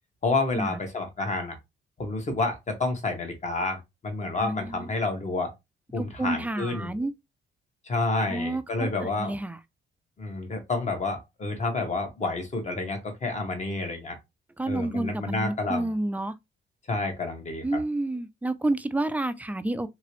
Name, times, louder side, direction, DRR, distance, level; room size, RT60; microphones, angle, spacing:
voice 1, 0.2-1.5 2.0-5.5 5.9-7.0 7.8-9.4 10.2-14.2 14.7-15.9 16.9-17.6, left 3 dB, 35° left, 1.2 m, -29 dB
voice 2, 4.4-4.9 6.0-7.1 8.3-9.6 14.6-16.3 17.6-19.9, right 2 dB, 10° right, 0.3 m, -30 dB
3.0 x 2.9 x 3.0 m
cardioid pair, 90°, 20 cm